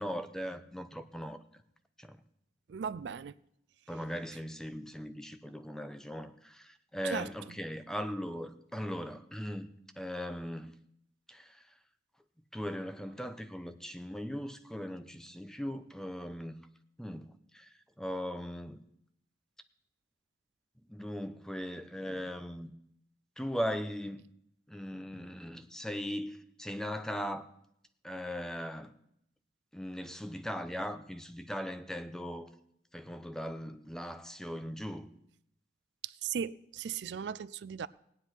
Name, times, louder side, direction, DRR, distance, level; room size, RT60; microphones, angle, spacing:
voice 1, 0.0-1.4 2.0-2.2 3.9-10.8 11.3-11.7 12.5-16.6 17.0-18.8 20.9-22.7 23.4-24.2 24.7-27.5 28.0-28.9 29.7-32.5 32.9-35.1, equal, 5° left, 0.7 m, -39 dB
voice 2, 2.7-3.3 7.0-7.3 36.0-37.9, right 7 dB, 75° right, 0.4 m, -37 dB
17.5 x 9.8 x 4.5 m
head